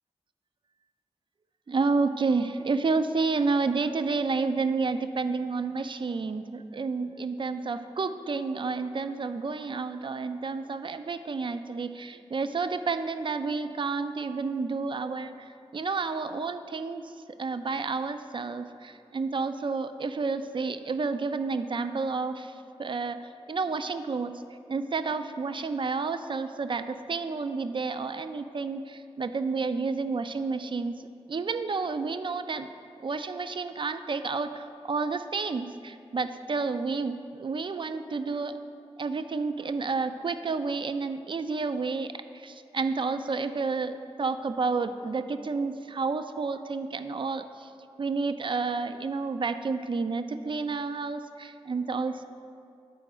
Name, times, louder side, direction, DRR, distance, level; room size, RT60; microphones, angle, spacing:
voice 1, 1.7-17.1 17.4-22.5 22.8-24.4 24.7-30.9 31.3-32.7 33.0-38.5 39.0-42.1 42.4-47.7 48.0-52.2, right 4 dB, 45° right, 10 dB, 0.4 m, -30 dB
7.7 x 4.5 x 4.9 m, 2.5 s
cardioid pair, 40°, 12 cm